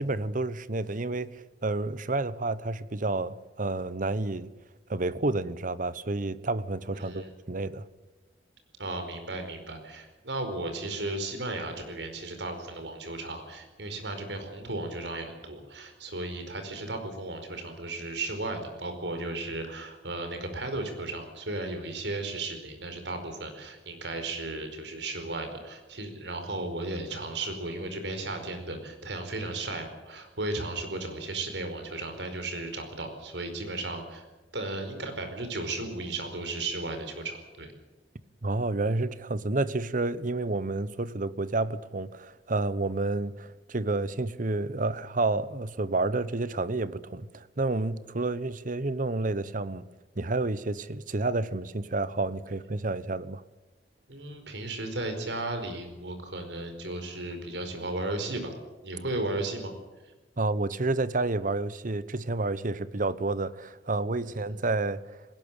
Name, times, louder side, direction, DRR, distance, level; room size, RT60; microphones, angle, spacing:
voice 1, 0.0-4.5 4.9-7.9 38.4-49.9 50.2-53.4 60.4-65.0, right 2 dB, 50° right, 1.0 m, -30 dB
voice 2, 6.9-7.3 8.8-34.2 34.5-37.7 54.1-58.5 58.8-59.7 64.2-64.6, right 2 dB, 75° right, 4.8 m, -35 dB
20.0 x 18.0 x 8.9 m
head